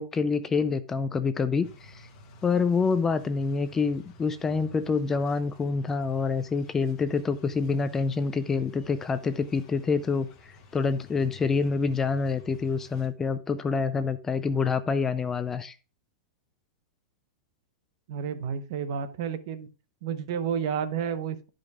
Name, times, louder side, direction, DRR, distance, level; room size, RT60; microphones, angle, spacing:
voice 1, 0.0-2.1 2.4-10.3 10.7-15.7, left 4 dB, 15° left, 0.4 m, -27 dB
sound 1, 1.6-13.1, left 3 dB, 30° left, 1.6 m, -53 dB
voice 2, 18.1-19.7 20.0-21.5, right 7 dB, 55° right, 0.9 m, -31 dB
12.0 x 5.1 x 3.6 m
hypercardioid pair, 150°, 3 cm